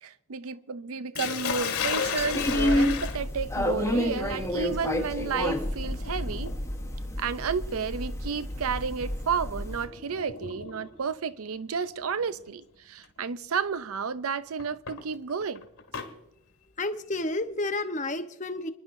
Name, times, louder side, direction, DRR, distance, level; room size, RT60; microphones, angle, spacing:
voice 1, 0.0-6.5 7.2-15.7, right 6 dB, 80° right, 0.6 m, -32 dB
Sink (filling or washing), 1.2-11.1 12.2-12.5 13.0-13.1 14.6-16.1, left 6 dB, 90° left, 2.2 m, -36 dB
sound 1, 2.2-9.8, left 1 dB, 10° left, 1.0 m, -29 dB
voice 2, 16.8-18.7, left 2 dB, 35° left, 0.8 m, -30 dB
29.5 x 10.5 x 2.6 m
head